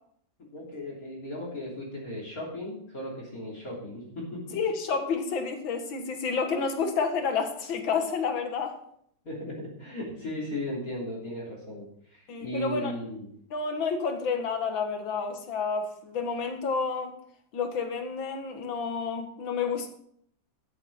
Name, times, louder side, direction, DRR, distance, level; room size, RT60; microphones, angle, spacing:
voice 1, 0.5-4.4 9.2-13.3, left 1 dB, 45° left, -4 dB, 3.8 m, -36 dB
voice 2, 4.5-8.8 12.3-12.9 13.5-17.2 17.5-19.9, left 5 dB, 80° left, 6 dB, 2.3 m, -30 dB
13.5 x 7.5 x 5.7 m, 0.68 s
omnidirectional pair, 2.1 m